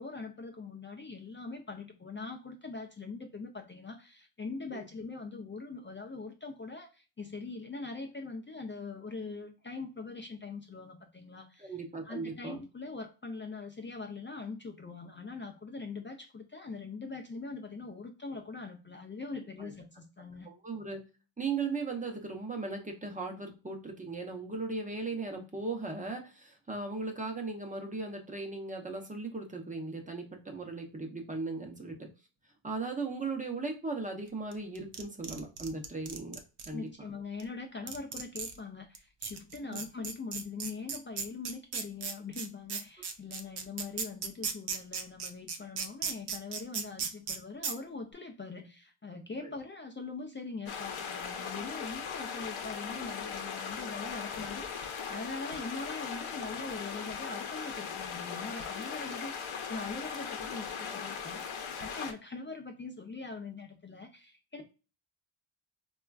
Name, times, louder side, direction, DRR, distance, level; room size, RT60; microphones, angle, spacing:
voice 1, 0.0-11.8 12.0-20.5 36.7-64.6, left 4 dB, 25° left, 4 dB, 0.4 m, -42 dB
voice 2, 11.6-12.6 19.6-19.7 20.4-21.0 21.4-32.1 32.6-36.4 36.7-36.9 49.4-49.5, right 3 dB, 15° right, 3 dB, 0.6 m, -37 dB
sound 1, 34.5-36.7 37.4-37.5 37.9-38.6 38.9-39.0 39.2-47.4 47.6-47.7, right 6 dB, 55° right, 0.6 m, -36 dB
sound 2, 50.7-62.1, left 6 dB, 80° left, 0.8 m, -39 dB
4.2 x 2.3 x 2.2 m, 0.32 s
wide cardioid pair, 155°, 48 cm